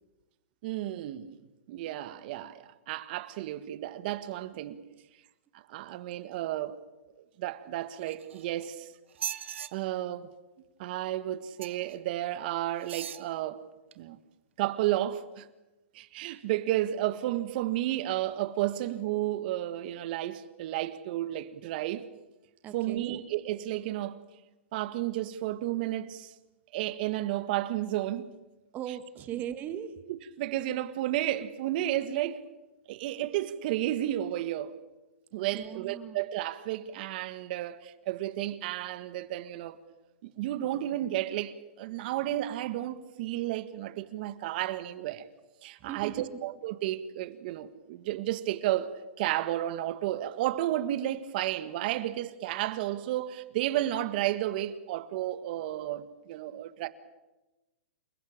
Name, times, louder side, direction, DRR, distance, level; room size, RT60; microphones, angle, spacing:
voice 1, 0.6-1.4 1.7-4.8 5.5-6.8 7.4-8.9 9.3-10.3 10.8-13.6 14.0-14.2 14.6-15.5 15.9-22.1 22.7-24.2 24.7-26.3 26.7-28.3 29.3-29.4 30.1-32.4 32.9-34.7 35.3-39.8 40.4-45.2 45.6-56.9, right 14 dB, 50° right, 1.6 m, -32 dB
sound 1, 8.0-8.7 9.1-9.7 11.6-11.9 12.8-13.3 13.9-14.0, right 10 dB, 75° right, 1.4 m, -38 dB
voice 2, 22.6-23.2 28.7-30.0 35.5-36.2 45.8-46.3, right 10 dB, 25° right, 1.9 m, -38 dB
28.5 x 16.0 x 8.8 m
hypercardioid pair, 145°, 7 cm